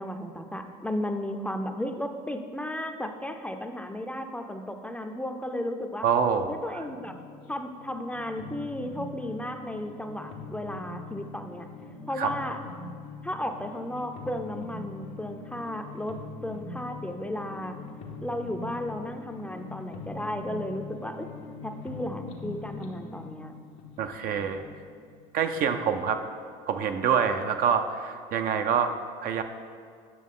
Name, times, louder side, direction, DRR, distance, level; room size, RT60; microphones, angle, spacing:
voice 1, 0.0-6.1 6.5-7.1 7.5-11.7 12.1-12.6 13.2-17.8 18.2-21.3 21.6-23.5, left 1 dB, 5° left, 5 dB, 0.5 m, -34 dB
voice 2, 6.0-6.5 12.2-12.3 24.0-24.6 25.3-26.2 26.7-28.9 29.2-29.4, right 7 dB, 60° right, 7 dB, 0.6 m, -26 dB
sound 1, 6.8-25.9, left 3 dB, 80° left, 0.9 m, -43 dB
8.4 x 5.9 x 3.7 m, 2.2 s
supercardioid pair, 85°, 17 cm